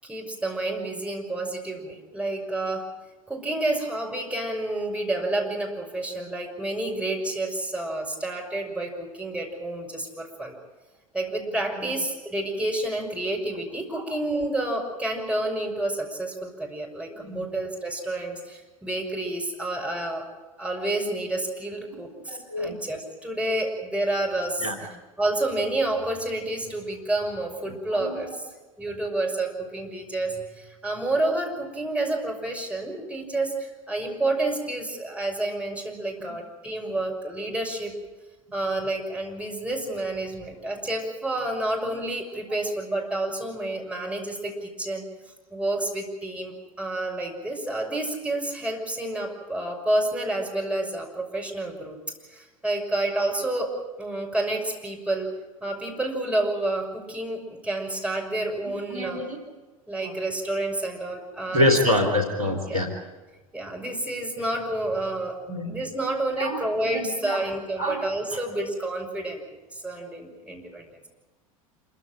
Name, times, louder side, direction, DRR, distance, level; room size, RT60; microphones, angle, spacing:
voice 1, 0.0-2.9 3.3-10.5 11.1-20.3 20.6-24.7 25.2-28.4 28.8-37.9 38.5-45.1 45.5-52.0 52.3-55.3 55.6-59.3 59.9-61.9 62.6-62.8 63.5-65.4 65.6-69.4 69.7-71.0, right 2 dB, 5° right, 1 dB, 6.1 m, -29 dB
voice 2, 17.2-17.5 22.2-22.8 24.6-24.8 27.7-27.8 28.0-28.2 58.9-59.4 60.0-60.2 61.5-62.9 65.5-65.8 66.4-66.6 66.9-67.4 67.8-68.0 68.3-68.4, left 1 dB, 80° right, 3 dB, 3.3 m, -26 dB
27.0 x 15.0 x 9.1 m, 1.2 s
figure-of-eight pair, 75°, 18 cm